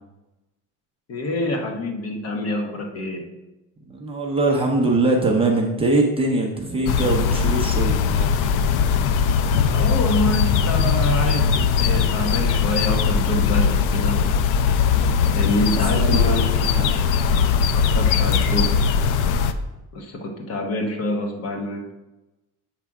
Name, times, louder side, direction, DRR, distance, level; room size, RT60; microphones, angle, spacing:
voice 1, 1.1-3.2 9.7-14.3 15.3-16.7 17.2-18.7 19.9-21.9, left 1 dB, 50° left, 3 dB, 1.0 m, -26 dB
voice 2, 3.9-8.3 15.9-17.0, right 2 dB, 15° right, 0 dB, 0.6 m, -22 dB
sound 1, 6.9-19.5, left 6 dB, 70° left, 0.5 m, -20 dB
7.3 x 3.3 x 4.7 m, 1.0 s
cardioid pair, 165°, 33 cm